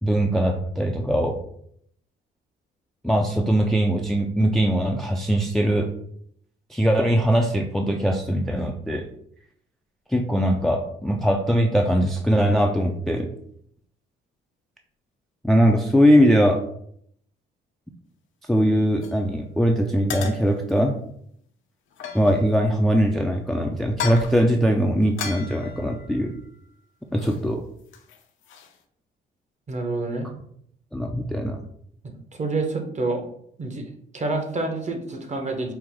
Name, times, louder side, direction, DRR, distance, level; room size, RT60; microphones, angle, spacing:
voice 1, 0.0-1.4 3.0-5.9 6.7-9.0 10.1-13.3 15.4-16.6 18.5-20.9 22.1-26.3 27.1-27.6 30.9-31.6, equal, ahead, 3 dB, 0.3 m, -21 dB
sound 1, 19.0-19.2 20.1-20.8 21.9-22.6 23.9-24.4 25.2-26.7 27.1-27.5 27.7-28.8, left 7 dB, 80° left, 0.6 m, -36 dB
voice 2, 29.7-30.3 32.3-33.2 33.6-33.9 34.1-35.7, right 3 dB, 35° right, 4 dB, 0.8 m, -27 dB
4.6 x 2.0 x 3.5 m, 0.67 s
cardioid pair, 90°, 20 cm